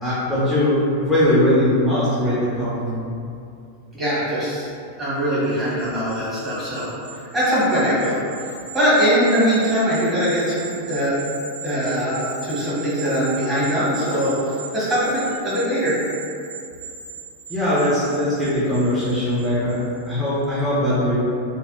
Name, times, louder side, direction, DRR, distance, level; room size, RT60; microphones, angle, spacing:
voice 1, 0.0-0.7 1.0-2.8 17.5-19.8 20.1-21.2, left 1 dB, 5° left, -11 dB, 0.7 m, -20 dB
voice 2, 3.9-4.7 5.0-6.9 7.3-8.2 8.7-11.2 11.6-15.9, equal, 15° right, -10 dB, 1.3 m, -21 dB
sound 1, 5.5-20.1 20.4-20.6, right 5 dB, 65° right, 0.3 m, -38 dB
3.3 x 2.3 x 2.5 m, 2.5 s
figure-of-eight pair, 90°, 0 cm